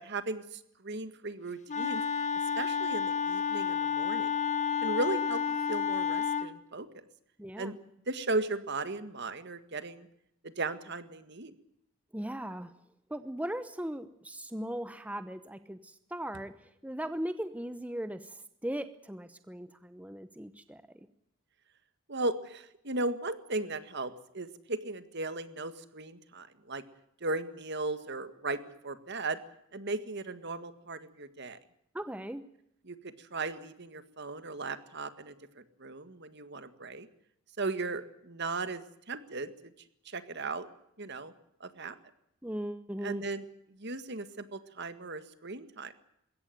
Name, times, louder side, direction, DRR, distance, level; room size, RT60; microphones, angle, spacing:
voice 1, 0.0-2.0 2.6-4.3 4.8-7.0 7.6-7.7 8.1-10.1 10.4-11.5 22.1-26.8 27.2-29.4 29.7-31.6 32.8-37.1 37.6-39.7 40.1-40.7 41.0-41.3 41.6-42.0 43.0-45.9, right 2 dB, 55° right, 11 dB, 1.8 m, -37 dB
Wind instrument woodwind instrument, 1.7-6.5, left 6 dB, 35° left, 1.3 m, -30 dB
voice 2, 7.4-7.7 12.1-12.7 13.1-16.5 16.8-20.8 31.9-32.4 42.4-43.2, right 1 dB, 5° right, 11 dB, 0.9 m, -38 dB
21.5 x 17.0 x 9.4 m, 0.77 s
head